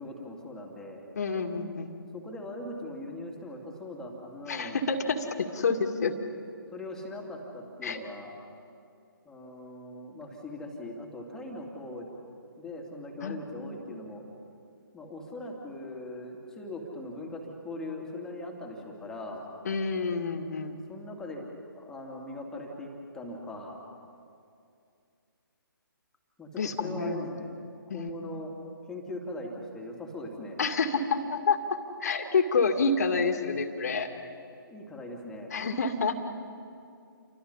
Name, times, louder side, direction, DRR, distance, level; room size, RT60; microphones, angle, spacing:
voice 1, 0.0-1.0 2.1-4.9 6.7-8.4 9.2-12.1 12.6-14.2 14.9-19.5 20.9-23.8 26.4-27.5 27.9-28.5 28.9-30.6 34.7-35.5, left 1 dB, 5° left, 0 dB, 2.6 m, -40 dB
voice 2, 1.2-1.9 4.5-6.1 7.8-8.0 13.2-13.4 19.7-20.8 26.6-27.3 27.9-28.1 30.6-31.6 32.0-34.1 35.5-36.2, left 4 dB, 45° left, 6 dB, 2.2 m, -28 dB
29.5 x 24.5 x 5.7 m, 2.4 s
figure-of-eight pair, 140°, 12 cm